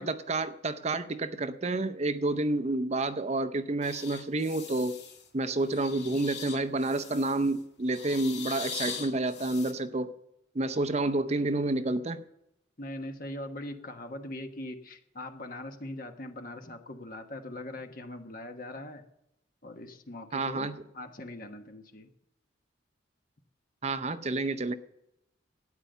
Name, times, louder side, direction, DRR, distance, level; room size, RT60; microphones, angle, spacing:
voice 1, 0.0-5.0 5.3-10.1 10.5-12.2 20.3-20.8 23.8-24.7, right 2 dB, 35° right, 0.6 m, -29 dB
sound 1, 3.8-5.3 5.6-7.5 7.9-9.7, left 6 dB, 65° left, 1.7 m, -41 dB
voice 2, 12.8-19.0 19.6-20.7 20.9-22.1, left 1 dB, 50° left, 1.3 m, -41 dB
12.5 x 9.4 x 6.8 m
head